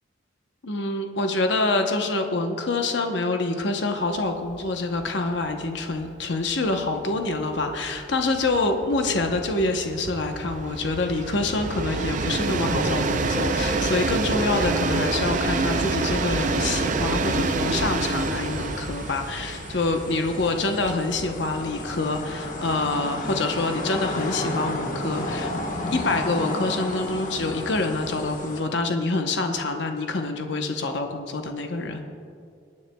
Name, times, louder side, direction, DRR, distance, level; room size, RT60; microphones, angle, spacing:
voice 1, 0.6-25.5 25.9-32.1, left 3 dB, 65° left, 4 dB, 0.8 m, -26 dB
Train, 4.5-4.6 5.0-5.1 5.4-22.8, right 3 dB, 40° right, 0.5 m, -28 dB
sound 1, 18.0-28.6, left 1 dB, 40° left, 1.2 m, -33 dB
21.0 x 9.6 x 2.2 m, 2.4 s
head